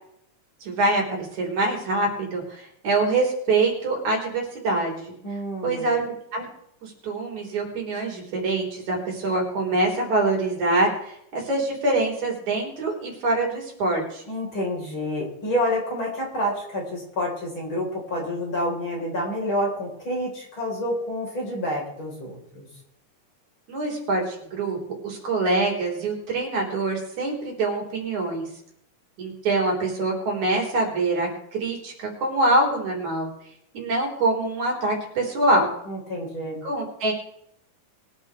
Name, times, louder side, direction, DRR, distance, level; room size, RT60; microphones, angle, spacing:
voice 1, 0.6-5.1 5.6-6.5 6.8-14.2 23.7-24.8 25.0-28.5 29.2-33.3 33.7-35.7 36.6-37.1, right 2 dB, 60° right, -1 dB, 5.0 m, -25 dB
voice 2, 5.2-5.9 14.3-22.7 35.9-36.6, equal, 35° left, -2 dB, 4.7 m, -28 dB
22.5 x 11.0 x 3.3 m, 0.74 s
omnidirectional pair, 3.8 m